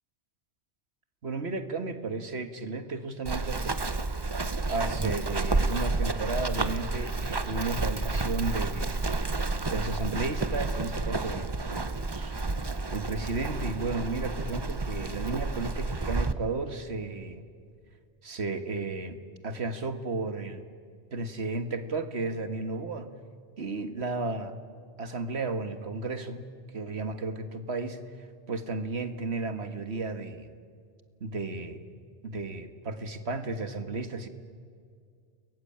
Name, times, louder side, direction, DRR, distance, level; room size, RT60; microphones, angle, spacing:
voice 1, 1.2-3.8 4.7-9.0 9.7-12.3 12.9-17.5 18.2-19.2 19.4-20.6 21.1-23.1 23.6-24.6 25.0-26.4 26.7-30.5 31.2-31.9 32.2-34.3, right 3 dB, 70° right, 9 dB, 2.0 m, -33 dB
Run, 3.3-16.3, right 3 dB, 25° right, 0.9 m, -30 dB
29.5 x 21.5 x 8.8 m, 2.2 s
omnidirectional pair, 1.1 m